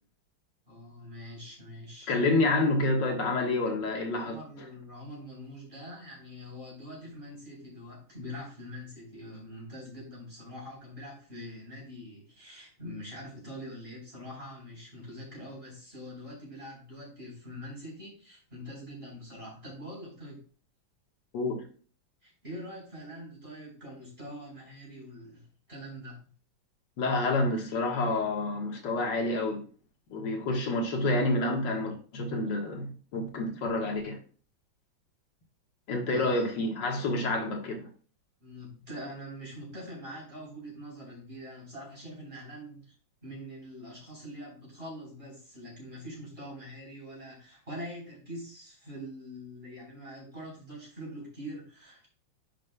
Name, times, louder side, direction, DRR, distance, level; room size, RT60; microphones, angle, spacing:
voice 1, 0.7-2.2 4.2-20.4 22.2-26.3 36.0-36.5 38.4-42.9 43.2-52.1, equal, 30° right, 4.1 m, -44 dB
voice 2, 2.1-4.4 21.3-21.6 27.0-29.6 30.1-34.2 35.9-37.9, left 2 dB, 65° left, 2.0 m, -28 dB
10.5 x 6.3 x 2.2 m
omnidirectional pair, 2.2 m